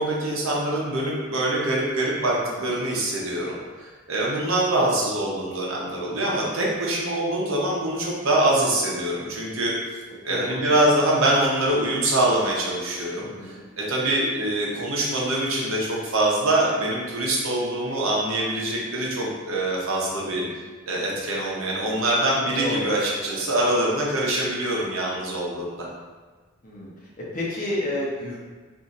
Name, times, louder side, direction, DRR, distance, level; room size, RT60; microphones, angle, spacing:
voice 1, 0.0-9.7 10.2-20.4 20.9-25.9, right 1 dB, 75° right, -3 dB, 0.8 m, -24 dB
voice 2, 10.3-10.8 13.2-13.6 20.2-20.6 22.6-22.9 26.6-26.9 27.3-28.4, left 1 dB, 40° left, -6 dB, 0.8 m, -31 dB
2.7 x 2.5 x 4.1 m, 1.4 s
head